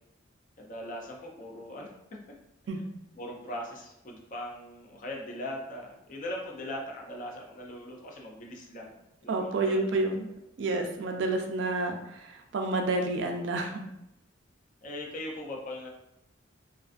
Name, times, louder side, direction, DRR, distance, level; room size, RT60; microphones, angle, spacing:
voice 1, 0.6-2.2 3.1-9.9 14.8-15.9, left 1 dB, 40° left, 0 dB, 0.4 m, -40 dB
voice 2, 9.3-10.3 10.6-13.9, right 2 dB, 65° right, 3 dB, 0.3 m, -29 dB
2.4 x 2.3 x 2.4 m, 0.85 s
head